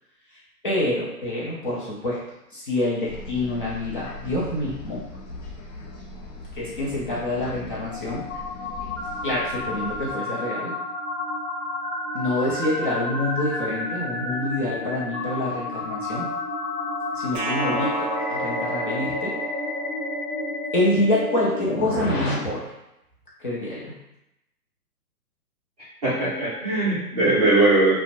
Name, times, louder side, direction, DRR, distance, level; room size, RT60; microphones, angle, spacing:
voice 1, 0.3-2.2 2.5-5.0 6.5-8.2 9.2-10.7 12.1-16.3 17.1-19.4 20.7-22.7 23.4-23.9, left 1 dB, 35° left, -6 dB, 0.5 m, -26 dB
sound 1, 3.0-10.1, left 2 dB, 90° left, 0.8 m, -40 dB
sound 2, 7.3-22.3, left 2 dB, 55° left, 1.0 m, -30 dB
sound 3, 17.3-20.4, right 3 dB, 80° right, 0.6 m, -32 dB
voice 2, 26.0-28.0, right 2 dB, 25° right, -9 dB, 0.5 m, -20 dB
2.4 x 2.1 x 2.8 m, 0.87 s
hypercardioid pair, 140°, 48 cm